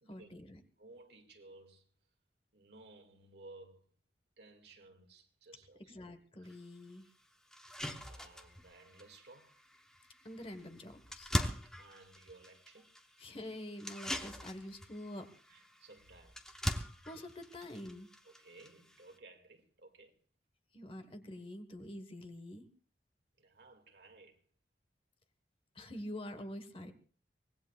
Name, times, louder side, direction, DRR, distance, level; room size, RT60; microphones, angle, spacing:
voice 1, 0.1-0.6 5.9-7.1 10.2-11.3 13.2-15.3 17.1-18.1 20.7-22.7 25.7-26.9, left 1 dB, 30° left, 1.4 m, -46 dB
voice 2, 0.8-1.8 2.5-3.8 4.4-5.9 6.4-6.5 7.5-9.5 11.8-12.9 15.5-16.4 18.3-20.1 23.4-24.4, right 2 dB, 70° right, 2.2 m, -57 dB
refrigerator opening, 6.5-6.6 7.0-7.1 7.5-19.2, equal, 5° left, 1.0 m, -42 dB
24.0 x 19.0 x 2.4 m
head